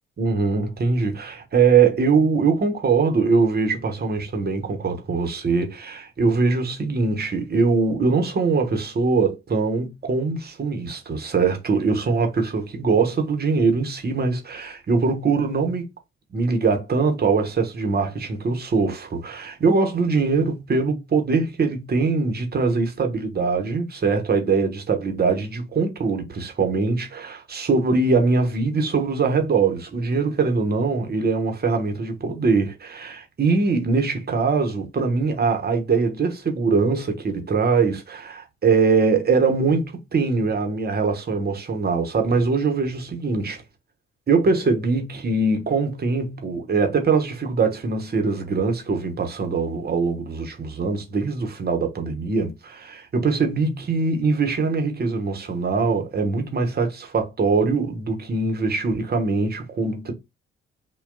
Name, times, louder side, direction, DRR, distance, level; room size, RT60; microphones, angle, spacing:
voice 1, 0.2-15.9 16.3-43.6 44.3-60.1, right 4 dB, 30° right, 1.0 m, -22 dB
5.8 x 2.2 x 2.5 m
figure-of-eight pair, 40°, 32 cm